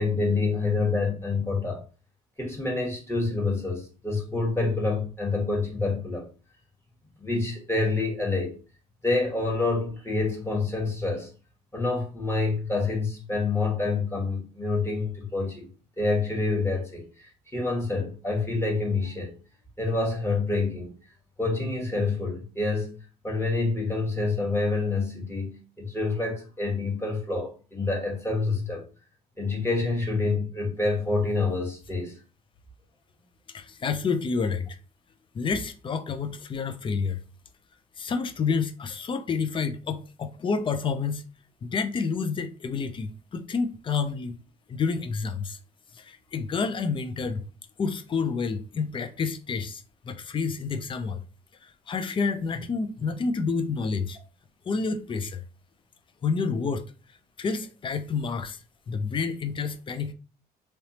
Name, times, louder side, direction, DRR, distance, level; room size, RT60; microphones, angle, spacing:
voice 1, 0.0-1.8 2.4-6.3 7.2-8.6 9.0-11.3 11.7-15.7 16.0-19.3 19.8-20.9 21.4-23.0 23.2-28.8 29.4-32.1, left 3 dB, 15° left, 1.3 m, -27 dB
voice 2, 33.5-34.8 35.3-37.2 38.0-41.2 41.6-44.4 44.7-45.6 46.0-47.4 47.8-51.2 51.6-54.2 54.7-55.4 56.2-56.8 57.4-58.6 58.9-60.1, left 5 dB, 30° left, 0.5 m, -29 dB
3.3 x 2.9 x 2.8 m
cardioid pair, 110°, 17 cm